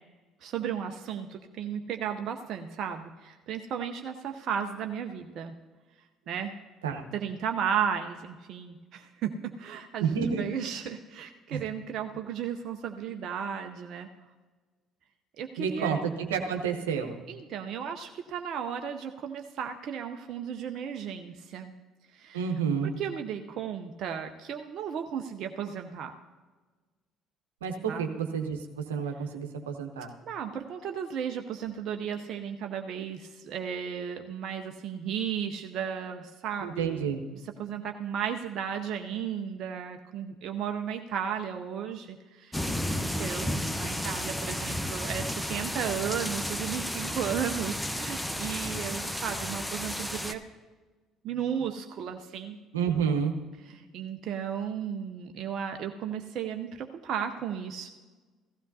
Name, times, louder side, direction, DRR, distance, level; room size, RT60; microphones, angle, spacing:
voice 1, 0.4-5.6 6.3-6.5 7.1-14.1 15.4-16.0 17.3-21.7 22.1-22.4 23.0-26.1 27.9-28.1 30.2-37.1 37.6-50.4 51.2-52.6 53.7-57.9, right 8 dB, 55° right, 5 dB, 0.6 m, -34 dB
voice 2, 10.0-10.5 11.5-11.6 15.6-17.2 22.3-22.9 27.6-30.1 36.6-37.2 52.7-53.4, right 6 dB, 85° right, 4 dB, 0.9 m, -30 dB
sound 1, 42.5-50.3, left 1 dB, 5° left, 0.9 m, -32 dB
16.0 x 14.5 x 2.7 m, 1.3 s
hypercardioid pair, 55°, 0 cm